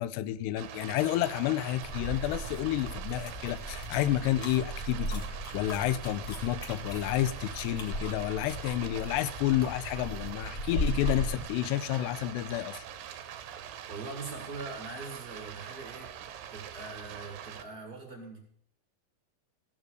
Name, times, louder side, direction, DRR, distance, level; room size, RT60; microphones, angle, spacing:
voice 1, 0.0-12.9, left 13 dB, 80° left, 2.6 m, -30 dB
Stream, 0.6-17.6, right 9 dB, 70° right, 2.3 m, -44 dB
sound 1, 1.8-11.5, equal, 65° left, 0.9 m, -37 dB
voice 2, 13.9-18.4, right 3 dB, 35° right, 1.6 m, -42 dB
16.0 x 7.2 x 6.5 m
omnidirectional pair, 5.0 m